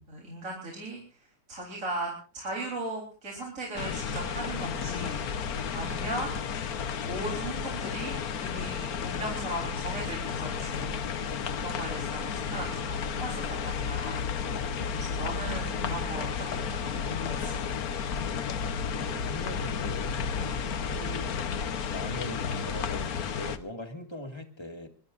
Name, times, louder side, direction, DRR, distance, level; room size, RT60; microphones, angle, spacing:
voice 1, 0.1-5.2 5.7-6.4 7.0-11.0 11.6-17.6 20.4-20.5, right 1 dB, 45° right, -1 dB, 4.2 m, -38 dB
sound 1, 3.8-23.6, left 6 dB, 60° left, 1.4 m, -32 dB
voice 2, 14.7-15.1 19.0-20.2 20.8-21.3 21.9-24.9, left 1 dB, 15° left, 5 dB, 2.0 m, -40 dB
23.5 x 22.5 x 2.5 m, 0.38 s
omnidirectional pair, 1.9 m